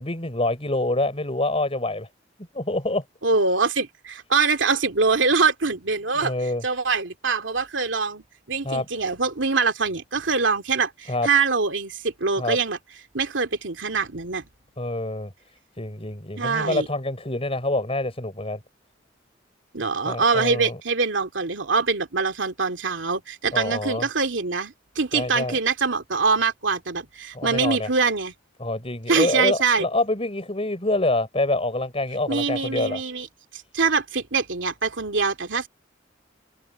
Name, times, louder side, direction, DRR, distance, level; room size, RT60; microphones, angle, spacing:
voice 1, 0.0-2.1 2.5-3.0 6.2-6.6 8.6-8.9 11.1-11.3 12.4-12.6 14.8-15.3 15.8-18.6 20.1-20.8 23.5-24.1 25.1-25.6 27.3-27.9 28.6-33.0, left 2 dB, 30° left, 5.3 m, -26 dB
voice 2, 3.2-6.3 6.6-12.8 13.1-14.5 16.4-16.9 19.7-28.3 29.1-29.9 32.3-33.3 33.5-35.7, right 4 dB, 80° right, 2.6 m, -24 dB
head